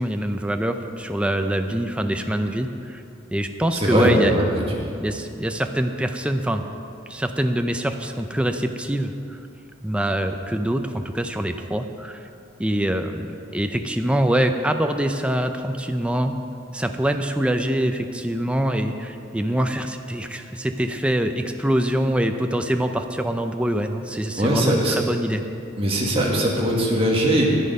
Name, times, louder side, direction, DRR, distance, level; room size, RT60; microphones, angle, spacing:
voice 1, 0.0-3.0 3.3-4.3 5.0-6.6 7.1-9.4 9.8-12.2 12.6-16.3 16.7-25.4, right 1 dB, 5° right, 6 dB, 0.5 m, -24 dB
voice 2, 3.7-4.5 4.7-4.9 24.4-25.0 25.8-27.5, right 1 dB, 30° right, -2 dB, 1.8 m, -20 dB
11.0 x 10.0 x 5.4 m, 2.6 s
head